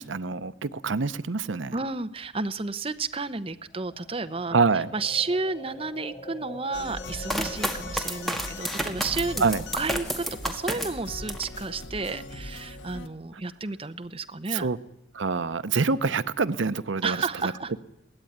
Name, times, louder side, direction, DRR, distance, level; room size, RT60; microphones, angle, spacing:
voice 1, 0.0-1.8 4.5-4.9 9.4-9.6 14.5-14.8 15.1-17.2 17.4-17.5, right 4 dB, 85° right, 0.7 m, -26 dB
voice 2, 1.7-4.6 4.9-9.4 9.7-14.7 17.0-17.7, right 3 dB, 30° right, 0.8 m, -31 dB
sound 1, 3.7-11.7, equal, 35° left, 4.3 m, -46 dB
sound 2, 6.7-13.1, left 2 dB, 80° left, 1.4 m, -40 dB
sound 3, 7.3-11.6 12.0-12.6, equal, ahead, 1.7 m, -31 dB
22.0 x 17.5 x 9.3 m
head